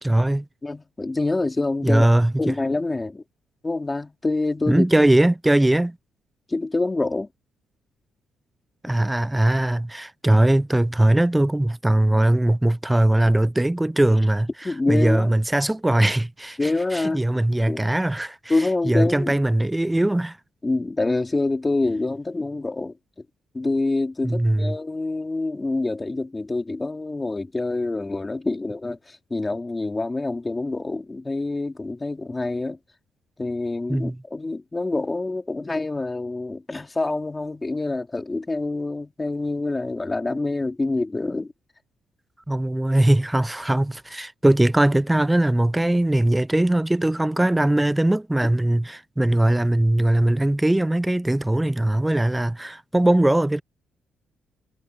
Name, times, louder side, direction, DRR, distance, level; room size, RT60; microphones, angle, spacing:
voice 1, 0.0-0.5 1.8-2.5 4.7-6.0 8.8-14.5 14.9-16.6 16.9-18.5 18.8-20.4 24.2-24.8 33.9-34.2 42.5-53.6, right 1 dB, 10° right, 0.4 m, -20 dB
voice 2, 0.6-2.1 2.4-3.2 3.6-4.8 6.5-7.3 14.6-15.3 16.6-17.2 17.7-17.8 18.5-19.3 20.6-22.9 23.5-32.8 33.4-41.5, left 2 dB, 20° left, 3.3 m, -26 dB
cardioid pair, 90°, 0 cm